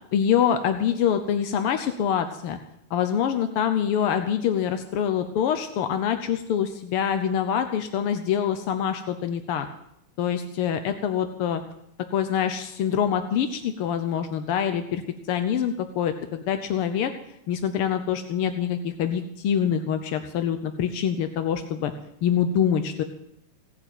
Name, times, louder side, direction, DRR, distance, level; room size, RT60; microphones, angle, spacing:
voice 1, 0.1-2.6 2.9-9.7 10.2-11.6 12.1-15.0 15.3-17.1 17.5-21.9 22.2-23.0, left 8 dB, 65° left, 8 dB, 1.4 m, -25 dB
17.5 x 8.5 x 9.1 m, 0.79 s
omnidirectional pair, 3.4 m